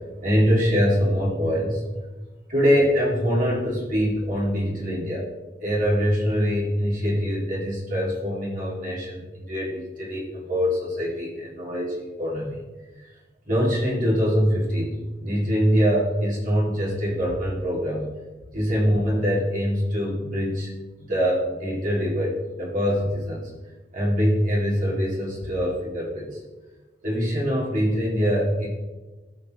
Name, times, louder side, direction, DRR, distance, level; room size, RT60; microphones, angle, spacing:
voice 1, 0.2-1.8 2.5-5.2 5.6-12.5 13.5-14.9 15.2-18.1 18.5-20.7 21.0-23.5 23.9-26.3 27.0-28.7, equal, 50° right, -5 dB, 2.7 m, -24 dB
16.5 x 6.8 x 3.2 m, 1.2 s
head